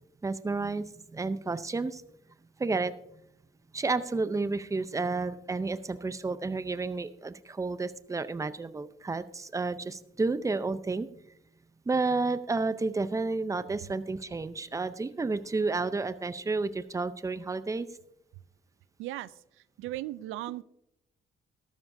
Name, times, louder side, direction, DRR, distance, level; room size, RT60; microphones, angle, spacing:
voice 1, 0.2-2.0 2.6-2.9 3.7-11.1 11.9-17.9, right 3 dB, 15° right, 14 dB, 0.6 m, -31 dB
voice 2, 19.0-19.3 19.8-20.6, right 15 dB, 85° right, 18 dB, 0.4 m, -36 dB
13.0 x 12.5 x 2.7 m, 0.77 s
cardioid pair, 90°, 20 cm